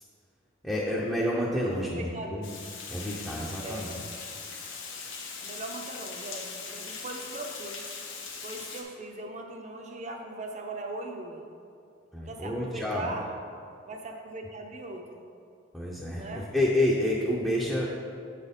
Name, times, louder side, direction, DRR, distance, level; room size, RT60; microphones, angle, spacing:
voice 1, 0.6-2.5 2.9-4.0 12.1-13.1 15.7-17.9, left 1 dB, ahead, -6 dB, 0.6 m, -29 dB
voice 2, 1.6-2.6 3.6-3.9 5.4-7.9 8.4-11.5 12.2-13.3 13.8-15.2 16.2-16.5, right 2 dB, 35° right, 3 dB, 0.6 m, -40 dB
Water, 2.4-8.8, left 5 dB, 70° left, 1.0 m, -40 dB
8.0 x 4.2 x 5.2 m, 2.5 s
head